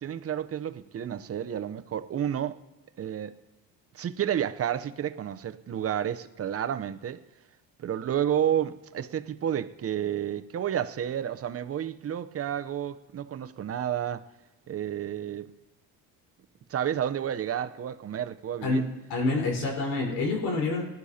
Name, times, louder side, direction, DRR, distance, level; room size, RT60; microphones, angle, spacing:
voice 1, 0.0-2.6 3.0-3.3 3.9-7.2 7.8-14.2 14.7-15.5 16.7-18.8, right 10 dB, 35° right, 0.7 m, -30 dB
voice 2, 19.1-20.8, left 3 dB, 75° left, 4.4 m, -27 dB
19.5 x 12.0 x 2.8 m
supercardioid pair, 85°, 41 cm